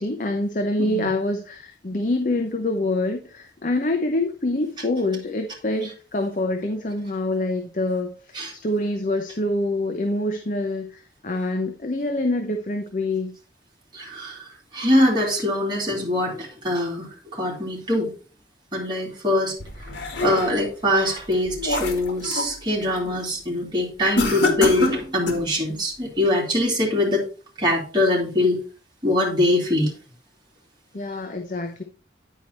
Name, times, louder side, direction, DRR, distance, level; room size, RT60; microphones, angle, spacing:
voice 1, 0.0-8.1 8.5-13.3 30.9-31.8, left 2 dB, 45° left, 5 dB, 0.8 m, -26 dB
voice 2, 13.9-18.1 18.7-19.5 20.2-27.2 27.6-28.6 29.0-29.9, left 1 dB, 25° right, -3 dB, 2.7 m, -23 dB
sound 1, 19.6-20.7 21.2-22.6 23.0-23.3 24.1-25.5, left 2 dB, 90° left, 1.7 m, -26 dB
10.0 x 4.6 x 4.1 m, 0.38 s
head